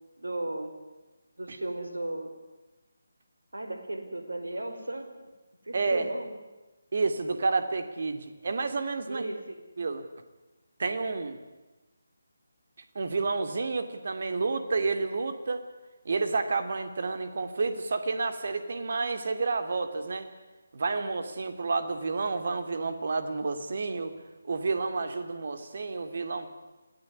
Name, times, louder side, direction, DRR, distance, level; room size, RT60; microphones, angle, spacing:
voice 1, 0.2-0.8 1.4-2.3 3.5-5.1 5.6-6.4 9.1-9.6, right 2 dB, 70° right, 6 dB, 4.9 m, -35 dB
voice 2, 5.7-6.1 6.9-9.3 9.8-10.0 10.8-11.4 12.9-15.6 16.0-20.3 20.7-24.1 24.5-26.5, right 3 dB, 50° right, 9 dB, 2.8 m, -30 dB
27.0 x 18.0 x 9.7 m, 1.1 s
figure-of-eight pair, 150°, 0 cm